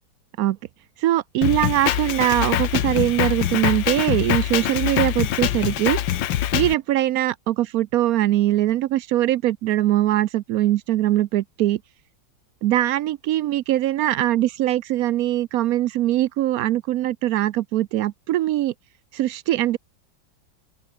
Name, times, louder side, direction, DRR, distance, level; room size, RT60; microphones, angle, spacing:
voice 1, 1.0-6.0 6.5-11.8 12.6-18.7 19.1-19.8, right 14 dB, 75° right, 0.8 m, -22 dB
Drum kit, 1.4-6.7, left 11 dB, 90° left, 1.8 m, -24 dB
omnidirectional pair, 2.0 m